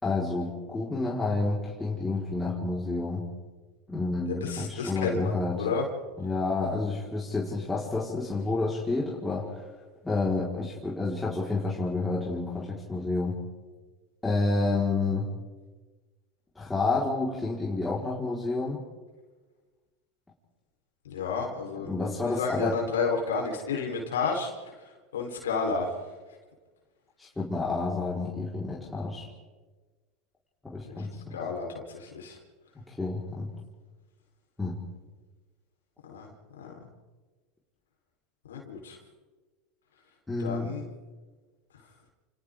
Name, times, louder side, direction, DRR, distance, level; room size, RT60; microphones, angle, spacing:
voice 1, 0.0-3.2 3.9-5.6 6.2-9.6 10.0-13.4 14.2-15.4 16.5-18.8 21.8-22.7 27.2-29.3 30.6-31.4 32.9-33.5 34.6-34.8 40.3-40.7, left 3 dB, 10° left, -5 dB, 4.6 m, -29 dB
voice 2, 4.3-5.9 21.0-24.7 25.1-25.9 30.9-31.1 31.3-32.4 36.1-36.9 38.5-39.0 40.4-40.8, left 4 dB, 85° left, 0 dB, 4.2 m, -31 dB
29.5 x 28.5 x 3.8 m, 1.3 s
hypercardioid pair, 85°, 0 cm